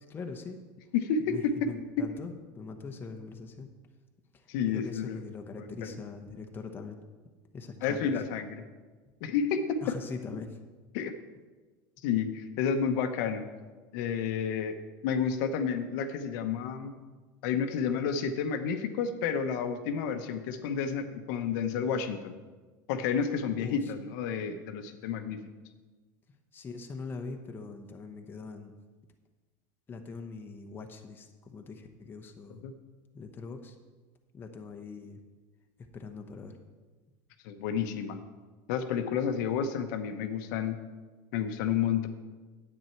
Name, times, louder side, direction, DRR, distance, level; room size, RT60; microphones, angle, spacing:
voice 1, 0.1-0.6 1.3-3.7 4.7-7.0 7.5-8.1 9.8-10.5 23.6-23.8 26.5-28.7 29.9-32.6 33.1-33.7 34.3-35.2 35.9-36.5, left 4 dB, 20° left, 4 dB, 0.9 m, -42 dB
voice 2, 0.9-1.7 2.0-2.1 4.5-5.2 5.6-6.0 7.8-8.6 9.2-10.0 10.9-11.1 12.0-13.5 13.9-14.7 15.0-16.9 17.4-22.4 22.9-25.4 32.5-32.7 37.4-38.2 38.7-40.8 41.3-42.1, left 7 dB, 70° left, 7 dB, 0.9 m, -30 dB
9.5 x 8.8 x 4.5 m, 1.3 s
supercardioid pair, 145°, 11 cm